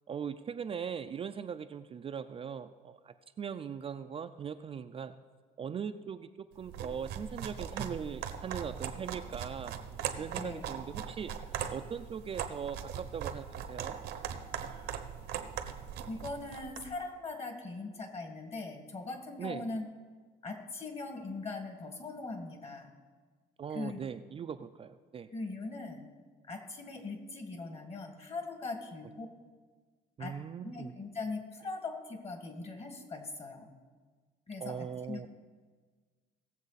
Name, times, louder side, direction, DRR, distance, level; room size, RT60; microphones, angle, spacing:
voice 1, 0.1-5.2 5.6-9.8 10.2-14.0 19.4-19.7 23.6-25.3 30.2-30.9 34.6-35.3, right 7 dB, 35° right, 8 dB, 0.4 m, -40 dB
sound 1, 6.6-16.9, right 8 dB, 80° right, 1.0 m, -40 dB
voice 2, 10.4-10.7 16.1-19.8 20.4-22.9 23.7-24.0 25.3-26.1 26.5-29.3 30.2-30.3 30.6-33.7 34.5-35.2, left 3 dB, 35° left, 5 dB, 1.9 m, -40 dB
18.0 x 7.3 x 4.1 m, 1.5 s
cardioid pair, 110°, 17 cm